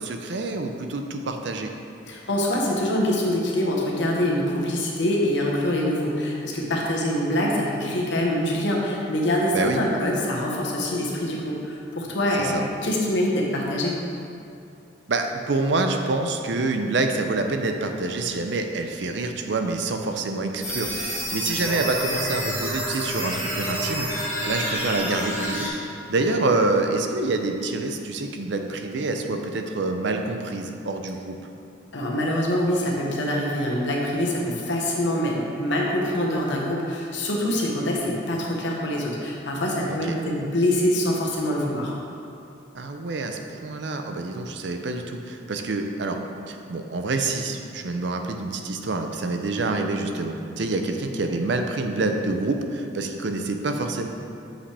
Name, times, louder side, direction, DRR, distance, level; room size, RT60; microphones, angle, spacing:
voice 1, 0.0-1.7 9.5-9.8 12.4-12.6 15.1-24.1 24.4-25.7 26.1-31.4 39.9-40.2 42.7-46.2 46.5-54.1, right 3 dB, 65° right, 5 dB, 0.5 m, -27 dB
voice 2, 2.1-13.9 31.9-41.9, left 1 dB, 70° left, -2 dB, 1.1 m, -25 dB
sound 1, 20.6-25.7, equal, 10° right, 1.1 m, -28 dB
7.5 x 5.5 x 3.3 m, 2.5 s
head